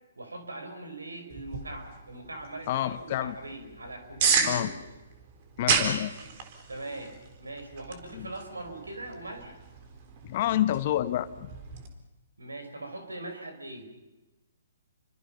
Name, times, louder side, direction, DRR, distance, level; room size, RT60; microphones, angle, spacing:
voice 1, 0.2-4.7 6.7-9.6 12.4-13.9, right 2 dB, 85° right, 6 dB, 5.3 m, -41 dB
sound 1, 1.3-11.9, right 6 dB, 40° right, 3.8 m, -33 dB
voice 2, 2.7-3.3 4.4-4.7 5.6-6.1 8.1-8.3 10.2-11.5, left 12 dB, 45° left, 13 dB, 1.3 m, -28 dB
29.5 x 24.5 x 5.7 m, 1.1 s
figure-of-eight pair, 130°, 0 cm